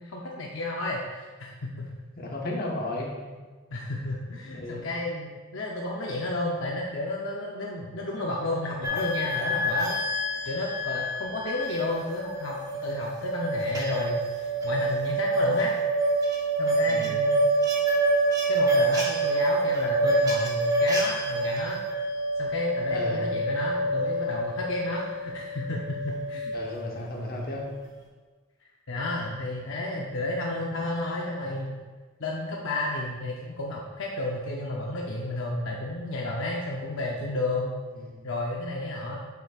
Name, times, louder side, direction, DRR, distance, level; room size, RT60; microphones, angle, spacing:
voice 1, 0.0-1.9 3.7-10.0 10.5-15.7 16.6-17.4 18.5-21.8 22.4-26.5 28.9-31.7 32.2-37.8 38.2-39.2, left 1 dB, 65° left, -2 dB, 0.7 m, -31 dB
voice 2, 2.2-3.4 4.5-4.8 16.9-17.1 22.9-23.2 26.5-27.7 37.9-38.2, left 1 dB, 45° left, -2 dB, 1.2 m, -34 dB
sound 1, 8.8-26.8, right 2 dB, 15° right, 1.0 m, -27 dB
7.9 x 7.0 x 2.4 m, 1.4 s
head